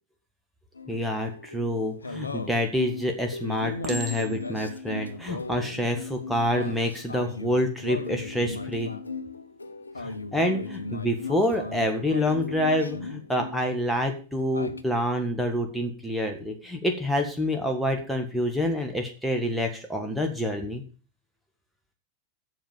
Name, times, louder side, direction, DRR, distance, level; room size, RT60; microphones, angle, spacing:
sound 1, 0.8-13.9 14.1-14.8, left 3 dB, 80° left, 0.7 m, -37 dB
voice 1, 0.9-8.9 10.0-20.8, left 1 dB, ahead, 2 dB, 1.6 m, -27 dB
Chink clink, 2.3-2.9 3.8-4.6 5.4-5.6, right 2 dB, 20° right, 2.0 m, -38 dB
7.9 x 7.0 x 7.4 m, 0.37 s
figure-of-eight pair, 90°, 0 cm